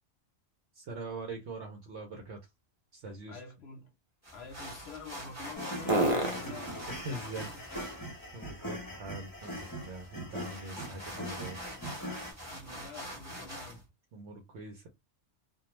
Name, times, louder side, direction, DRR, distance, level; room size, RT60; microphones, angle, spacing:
voice 1, 0.7-2.4 2.9-3.4 6.9-7.5 8.3-11.6 14.1-14.9, right 2 dB, 65° right, 0.9 m, -42 dB
sound 1, 0.9-10.0 10.4-14.2, right 1 dB, 40° right, 0.5 m, -40 dB
voice 2, 3.3-3.9 4.3-8.0 12.3-13.9, left 3 dB, 60° left, 0.8 m, -48 dB
sound 2, 4.2-13.8, equal, 15° right, 1.0 m, -45 dB
sound 3, 5.5-12.3, equal, 20° left, 0.7 m, -41 dB
2.3 x 2.2 x 2.9 m
omnidirectional pair, 1.4 m